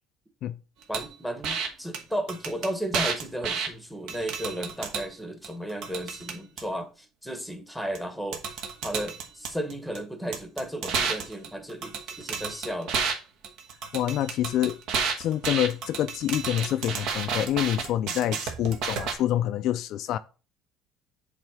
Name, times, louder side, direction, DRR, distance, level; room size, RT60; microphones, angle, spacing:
voice 1, 0.9-8.5 8.8-13.0, right 1 dB, 5° right, 1.0 m, -34 dB
sound 1, 0.9-1.1 1.4-1.7 1.9-2.0 2.3-3.7 4.1-5.1 5.4-6.6 8.0-8.1 8.3-10.0 10.3-13.1 13.4-19.1, right 6 dB, 65° right, 1.2 m, -31 dB
voice 2, 13.9-14.8 15.2-20.2, left 12 dB, 55° left, 0.3 m, -27 dB
7.4 x 3.2 x 4.8 m
cardioid pair, 130°, 0 cm